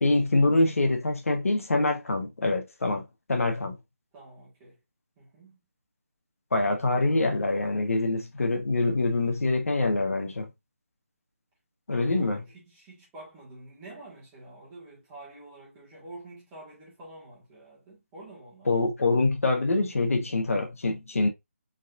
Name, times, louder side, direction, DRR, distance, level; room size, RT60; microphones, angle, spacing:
voice 1, 0.0-3.0 3.3-3.7 6.5-10.5 11.9-12.4 18.7-21.3, left 2 dB, 75° left, 1.2 m, -25 dB
voice 2, 4.1-4.8 5.2-5.6 12.1-18.7, right 2 dB, 10° right, 1.6 m, -47 dB
3.9 x 3.9 x 2.5 m
hypercardioid pair, 175°, 8 cm